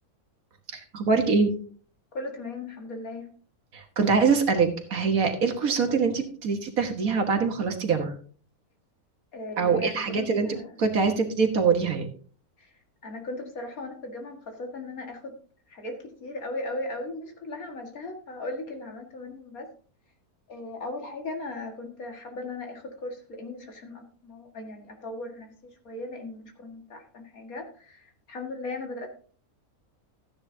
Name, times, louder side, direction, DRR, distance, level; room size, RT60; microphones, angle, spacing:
voice 1, 0.7-1.5 3.7-8.2 9.6-12.1, right 5 dB, 65° right, 5 dB, 1.9 m, -24 dB
voice 2, 2.1-3.3 9.3-10.7 12.6-12.7 13.0-15.3 15.7-19.7 20.5-25.5 25.8-29.1, left 2 dB, 65° left, 3 dB, 2.4 m, -37 dB
14.0 x 9.6 x 2.8 m, 0.42 s
omnidirectional pair, 1.6 m